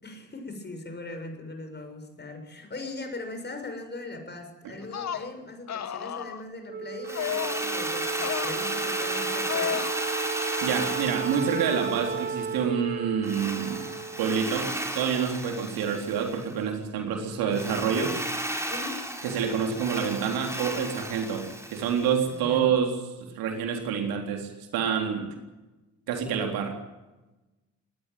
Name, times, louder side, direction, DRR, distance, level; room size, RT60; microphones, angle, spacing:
voice 1, 0.0-9.9 18.7-19.0 22.3-22.7, left 2 dB, 25° left, 6 dB, 6.7 m, -40 dB
sound 1, 4.8-5.3 5.7-6.4 7.2-7.7 8.1-8.6 9.5-9.9, left 9 dB, 45° left, 1.6 m, -32 dB
Wind instrument woodwind instrument, 6.7-15.3, right 6 dB, 25° right, 0.9 m, -34 dB
Drill, 7.0-12.6 13.2-16.5 17.5-22.3, right 1 dB, 5° right, 4.9 m, -34 dB
voice 2, 10.6-13.9 14.2-18.2 19.2-25.3 26.1-26.7, right 7 dB, 60° right, 4 dB, 3.8 m, -27 dB
21.5 x 19.0 x 9.3 m, 1.1 s
figure-of-eight pair, 45°, 39 cm